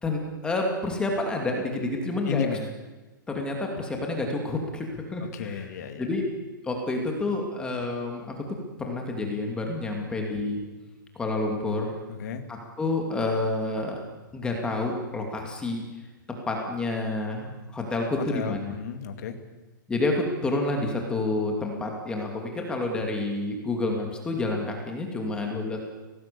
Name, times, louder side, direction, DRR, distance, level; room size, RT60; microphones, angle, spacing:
voice 1, 0.0-2.6 3.3-5.6 6.0-6.3 6.6-8.3 8.8-10.6 11.1-11.9 12.5-14.0 14.3-15.8 16.5-18.8 19.9-25.8, left 2 dB, 10° left, 2 dB, 2.6 m, -29 dB
voice 2, 2.3-2.7 5.3-6.0 12.1-12.4 18.3-19.4, left 7 dB, 50° left, 6 dB, 2.4 m, -33 dB
24.0 x 18.5 x 7.0 m, 1.2 s
hypercardioid pair, 165°, 11 cm